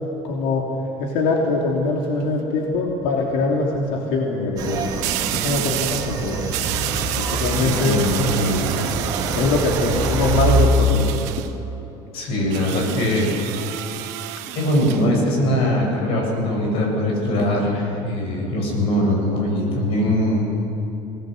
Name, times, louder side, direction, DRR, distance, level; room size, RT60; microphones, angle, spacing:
voice 1, 0.2-0.6 1.0-4.9 5.4-6.5 7.1-8.0 9.3-11.4 12.4-12.5, left 3 dB, 85° left, -1 dB, 3.0 m, -22 dB
sound 1, 1.9-2.2 5.0-6.2 6.5-11.5 12.5-15.1, right 13 dB, 70° right, 1.3 m, -30 dB
sound 2, 4.6-10.7, right 3 dB, 30° right, 2.1 m, -25 dB
voice 2, 7.5-8.6 12.1-13.8 14.5-20.4, left 1 dB, 50° left, 0 dB, 7.7 m, -21 dB
24.0 x 19.0 x 7.8 m, 3.0 s
cardioid pair, 170°, 12 cm